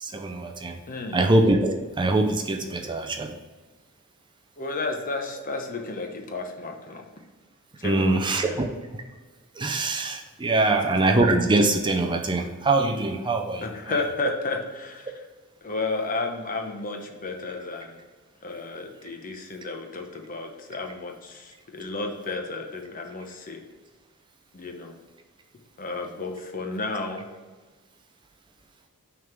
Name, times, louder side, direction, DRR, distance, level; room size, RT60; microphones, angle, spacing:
voice 1, 0.0-0.8 1.1-3.4 7.8-8.7 8.9-9.0 9.6-13.6, right 2 dB, 20° right, 3 dB, 0.5 m, -23 dB
voice 2, 0.9-1.2 4.6-7.1 7.8-8.6 10.6-10.8 13.6-15.1 15.6-18.0 18.4-23.6 24.5-25.0 25.8-27.3, left 3 dB, 40° left, 3 dB, 0.9 m, -32 dB
6.2 x 3.7 x 6.0 m, 1.4 s
head